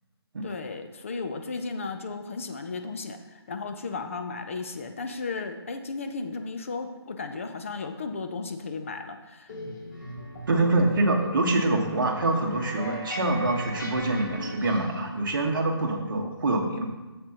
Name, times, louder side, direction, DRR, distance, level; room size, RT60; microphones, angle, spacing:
voice 1, 0.4-9.5, left 4 dB, 30° left, 6 dB, 0.5 m, -35 dB
sound 1, 9.5-15.0, left 1 dB, 45° left, 1.7 m, -38 dB
voice 2, 10.5-16.9, right 2 dB, 50° right, 1 dB, 1.4 m, -25 dB
9.9 x 7.7 x 2.9 m, 1.2 s
hypercardioid pair, 165°, 14 cm